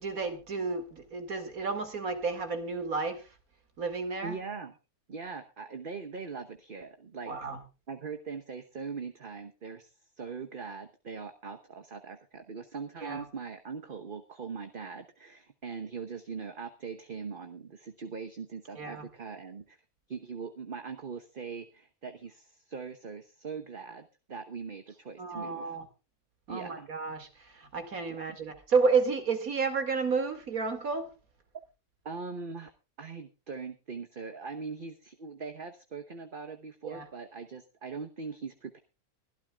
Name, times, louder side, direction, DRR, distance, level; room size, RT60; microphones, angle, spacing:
voice 1, 0.0-3.3 3.8-4.4 7.3-7.6 13.0-13.2 18.8-19.1 25.2-25.9 26.5-31.1 36.8-37.1, right 4 dB, 70° right, 8 dB, 2.8 m, -31 dB
voice 2, 4.2-4.7 5.1-7.3 7.9-19.8 20.1-25.8 26.5-26.9 28.1-28.2 32.0-32.7 33.0-38.8, right 5 dB, 40° right, 7 dB, 1.1 m, -41 dB
24.0 x 12.0 x 2.3 m, 0.30 s
omnidirectional pair, 1.6 m